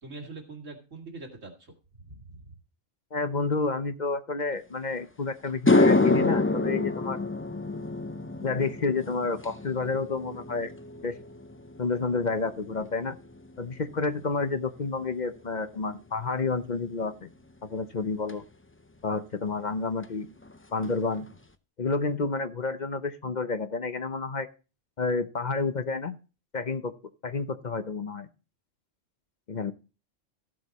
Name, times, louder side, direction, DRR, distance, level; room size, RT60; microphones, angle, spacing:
voice 1, 0.0-1.7 2.1-2.6, right 3 dB, 85° right, 2 dB, 2.5 m, -43 dB
voice 2, 3.1-7.2 8.4-10.7 11.0-11.2 11.8-13.2 13.6-17.3 17.7-18.4 19.0-20.3 20.7-21.3 21.8-24.5 25.0-26.1 26.5-26.9 27.2-28.3 29.5-29.7, left 4 dB, 40° left, 10 dB, 0.8 m, -30 dB
sound 1, 4.9-5.0 5.5-14.0 14.3-14.7 18.3-18.4 20.0-20.1 20.4-20.6 20.8-21.4, left 2 dB, 20° left, 0.3 m, -27 dB
14.5 x 7.9 x 4.1 m, 0.33 s
omnidirectional pair, 1.3 m